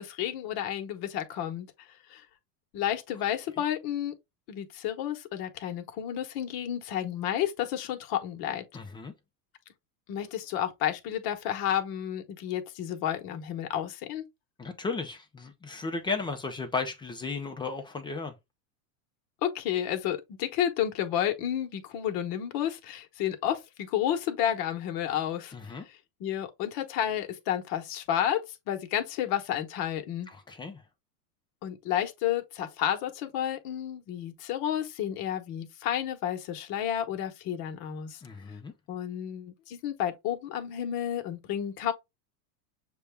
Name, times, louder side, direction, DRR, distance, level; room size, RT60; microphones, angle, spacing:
voice 1, 0.0-1.7 2.1-2.2 2.7-4.1 4.5-8.6 10.1-14.2 19.4-25.5 26.2-30.3 31.6-38.2 38.9-41.9, left 10 dB, 50° left, 1.1 m, -31 dB
voice 2, 8.7-9.1 14.6-18.3 25.5-25.9 30.3-30.8 38.2-38.7, left 4 dB, 10° left, 0.4 m, -35 dB
6.8 x 2.3 x 3.3 m
supercardioid pair, 135°, 46 cm